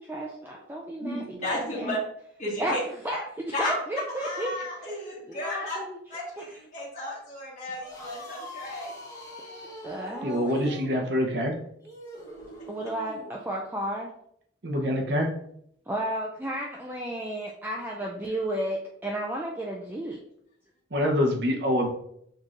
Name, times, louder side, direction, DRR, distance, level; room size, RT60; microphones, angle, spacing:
voice 1, 0.0-1.2 1.7-2.0 2.6-4.5 5.3-6.0 6.4-6.5 9.4-10.8 12.7-14.1 15.9-20.2, right 1 dB, 10° right, -2 dB, 0.4 m, -33 dB
voice 2, 1.0-2.0 2.4-2.8 3.5-3.7 4.1-5.8 6.1-6.5 6.7-8.9, left 1 dB, 40° left, -9 dB, 1.3 m, -33 dB
sound 1, 7.8-13.3, equal, 20° left, 1.0 m, -44 dB
voice 3, 10.2-11.6 14.6-15.3 20.9-21.9, left 1 dB, 60° right, 1 dB, 0.8 m, -25 dB
6.4 x 3.1 x 2.5 m, 0.71 s
head